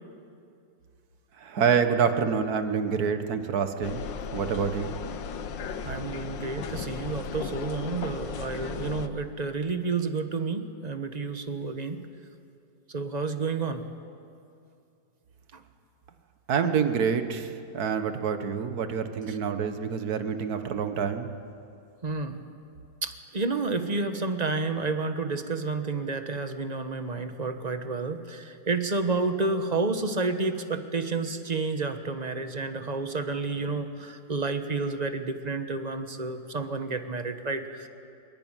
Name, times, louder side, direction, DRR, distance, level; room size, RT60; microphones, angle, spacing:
voice 1, 1.4-4.0 4.3-5.0 16.5-21.3, right 6 dB, 55° right, 8 dB, 1.7 m, -27 dB
sound 1, 3.8-9.1, left 6 dB, 75° left, 1.7 m, -36 dB
voice 2, 5.8-12.0 12.9-13.8 15.5-15.6 19.3-19.4 22.0-22.4 23.0-37.9, right 3 dB, 25° right, 8 dB, 1.1 m, -30 dB
22.0 x 22.0 x 9.0 m, 2.5 s
omnidirectional pair, 2.0 m